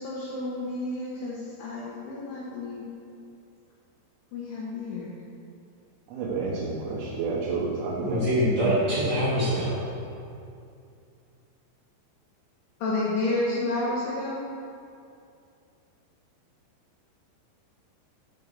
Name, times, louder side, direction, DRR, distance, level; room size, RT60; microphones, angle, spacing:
voice 1, 0.0-2.8 4.3-5.2 12.8-14.4, left 2 dB, 70° left, -6 dB, 3.2 m, -30 dB
voice 2, 6.1-8.2, right 4 dB, 85° right, -6 dB, 3.6 m, -30 dB
voice 3, 8.0-9.8, equal, 45° right, -11 dB, 1.4 m, -24 dB
12.0 x 4.7 x 6.8 m, 2.5 s
omnidirectional pair, 5.2 m